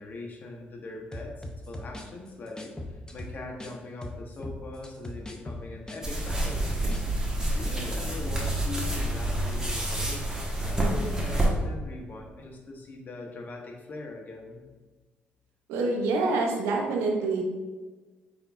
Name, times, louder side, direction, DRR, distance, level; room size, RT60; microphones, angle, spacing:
voice 1, 0.0-1.3 1.7-7.0 7.5-10.2 10.6-14.6, left 2 dB, 45° left, 0 dB, 1.0 m, -41 dB
sound 1, 1.1-3.7 4.0-7.1 7.3-7.5, left 1 dB, 15° left, 0.6 m, -39 dB
sound 2, 6.0-11.5, right 1 dB, 15° right, 1.2 m, -28 dB
voice 2, 15.7-17.4, right 3 dB, 90° right, 1 dB, 0.7 m, -26 dB
5.4 x 3.5 x 2.4 m, 1.3 s
supercardioid pair, 70°, 4 cm